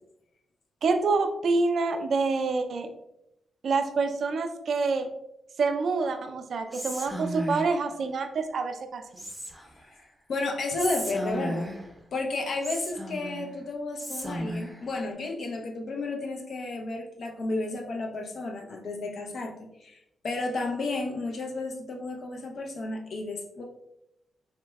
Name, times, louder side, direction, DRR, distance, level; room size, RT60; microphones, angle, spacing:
voice 1, 0.8-2.9 3.6-5.1 5.6-9.2, right 4 dB, 65° right, 7 dB, 0.3 m, -27 dB
Whispering, 6.7-7.8 9.2-9.8 10.8-11.9 12.6-13.5 14.0-14.8, equal, 5° right, 0.7 m, -35 dB
voice 2, 10.3-11.7 12.1-19.5 19.8-23.6, left 2 dB, 65° left, 2 dB, 0.5 m, -32 dB
4.0 x 2.1 x 2.2 m, 0.85 s
supercardioid pair, 50°, 0 cm